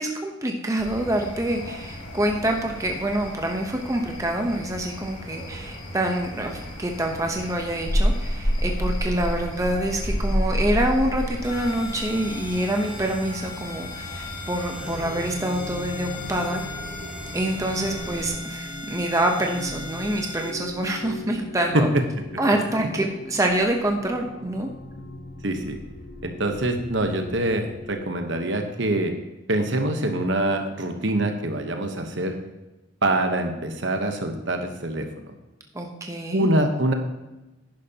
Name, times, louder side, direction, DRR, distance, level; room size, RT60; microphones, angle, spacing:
voice 1, 0.0-16.6 17.3-21.9 22.4-24.7 35.7-36.5, right 1 dB, 15° right, 2 dB, 0.9 m, -26 dB
sound 1, 0.8-18.3, equal, 85° left, 2.8 m, -31 dB
sound 2, 11.4-20.5, left 3 dB, 25° left, 1.1 m, -39 dB
sound 3, 14.8-27.9, left 2 dB, 65° left, 1.5 m, -39 dB
voice 2, 25.4-25.8 26.2-29.1 29.5-32.4 33.0-35.3 36.3-36.9, right 1 dB, 60° right, 5 dB, 1.1 m, -24 dB
11.0 x 10.5 x 2.9 m, 1.0 s
head